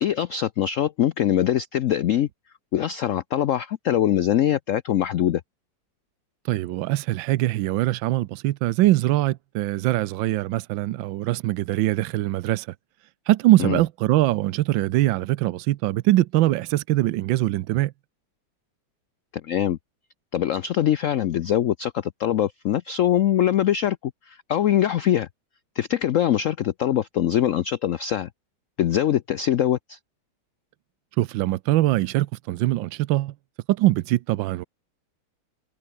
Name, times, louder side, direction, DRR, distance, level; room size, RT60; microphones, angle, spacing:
voice 1, 0.0-2.3 2.7-5.4 13.6-13.8 19.4-19.8 20.3-25.3 25.8-28.3 28.8-30.0, left 11 dB, 85° left, 0.7 m, -23 dB
voice 2, 6.4-12.7 13.3-17.9 31.2-33.3 33.7-34.6, right 16 dB, 85° right, 1.4 m, -22 dB
omnidirectional pair, 2.1 m